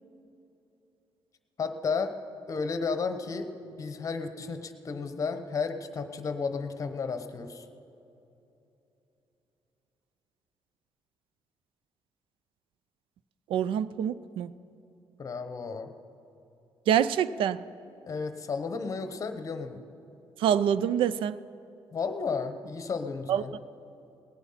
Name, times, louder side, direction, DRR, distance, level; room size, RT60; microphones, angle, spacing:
voice 1, 1.6-2.1 2.5-7.7 15.2-15.9 18.0-19.8 21.9-23.5, left 5 dB, 40° left, 9 dB, 0.9 m, -33 dB
voice 2, 13.5-14.5 16.9-17.6 20.4-21.4 23.3-23.4, right 9 dB, 85° right, 17 dB, 0.4 m, -26 dB
18.5 x 10.0 x 5.7 m, 2.9 s
cardioid pair, 135°, 9 cm